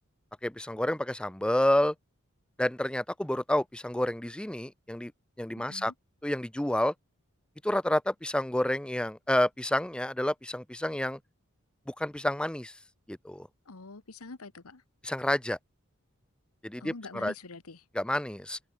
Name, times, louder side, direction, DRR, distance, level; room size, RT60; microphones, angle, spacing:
voice 1, 0.4-1.9 2.6-5.1 5.4-5.9 6.2-6.9 7.6-11.2 11.9-12.8 13.1-13.5 15.0-15.6 16.6-17.3 17.9-18.6, left 1 dB, 5° left, 0.4 m, -29 dB
voice 2, 5.6-5.9 13.7-14.8 16.8-17.8, left 3 dB, 85° left, 1.3 m, -45 dB
open air
head